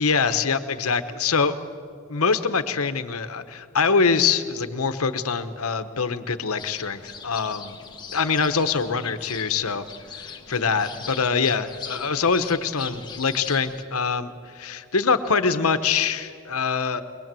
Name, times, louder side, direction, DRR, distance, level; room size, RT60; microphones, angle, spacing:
voice 1, 0.0-1.6 2.1-7.7 8.1-9.9 10.1-17.0, left 5 dB, 90° left, 10 dB, 1.1 m, -24 dB
sound 1, 6.6-13.8, left 6 dB, 20° left, 1.2 m, -40 dB
22.0 x 21.5 x 7.6 m, 2.2 s
head